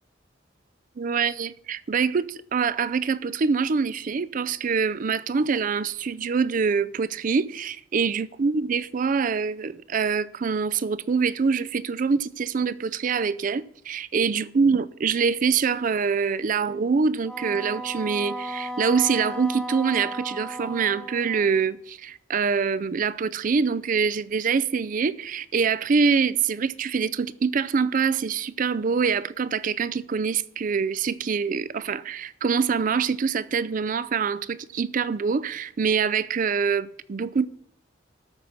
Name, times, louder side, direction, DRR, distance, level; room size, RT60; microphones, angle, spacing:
voice 1, 1.0-37.5, right 5 dB, 45° right, 0.4 m, -25 dB
Wind instrument woodwind instrument, 17.2-21.7, right 1 dB, 5° left, 1.0 m, -35 dB
13.5 x 5.5 x 5.9 m
head